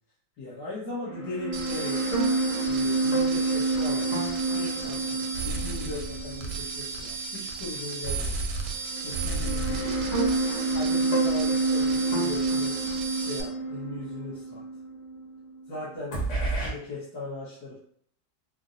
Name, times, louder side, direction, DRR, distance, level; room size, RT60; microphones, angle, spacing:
voice 1, 0.4-2.0 2.6-4.1 4.4-8.5 9.0-10.0 10.7-12.8 13.2-14.6 15.7-17.8, left 2 dB, 70° left, -11 dB, 1.6 m, -38 dB
sound 1, 1.0-7.3 7.6-7.7 8.8-15.7 16.1-16.7, right 3 dB, 50° left, 1.3 m, -28 dB
sound 2, 1.5-13.4, right 3 dB, 85° right, 1.2 m, -34 dB
4.1 x 2.0 x 2.5 m, 0.64 s
omnidirectional pair, 1.8 m